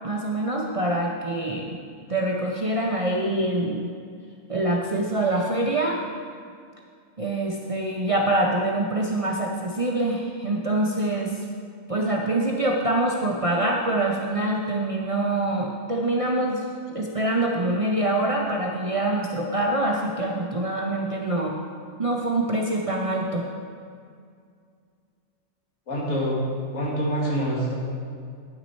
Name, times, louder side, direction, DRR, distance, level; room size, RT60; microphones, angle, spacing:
voice 1, 0.0-1.7 2.1-3.9 4.5-6.0 7.2-11.4 11.9-16.6 16.9-21.6 22.0-23.4, right 1 dB, 45° right, -2 dB, 0.4 m, -25 dB
voice 2, 25.9-26.4 26.7-27.7, equal, 70° left, -4 dB, 1.9 m, -25 dB
9.3 x 6.1 x 4.2 m, 2.2 s
omnidirectional pair, 1.4 m